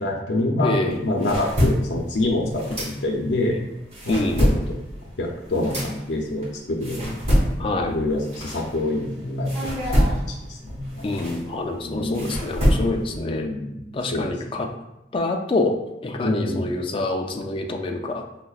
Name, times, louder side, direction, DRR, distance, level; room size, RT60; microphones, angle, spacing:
voice 1, 0.0-0.7 1.0-3.6 4.0-4.8 5.2-7.2 7.9-10.0 10.3-11.1 11.8-12.3 13.1-13.8 14.1-14.3 16.2-16.7, left 2 dB, 85° left, -1 dB, 0.6 m, -26 dB
voice 2, 0.6-1.1 4.1-4.5 7.6-7.9 11.0-13.5 13.9-14.7 15.1-18.2, left 2 dB, 30° left, 3 dB, 0.3 m, -26 dB
sound 1, 0.9-3.4 3.8-9.1 9.5-13.2, equal, 40° right, 1.4 m, -25 dB
5.5 x 2.1 x 2.3 m, 0.90 s
head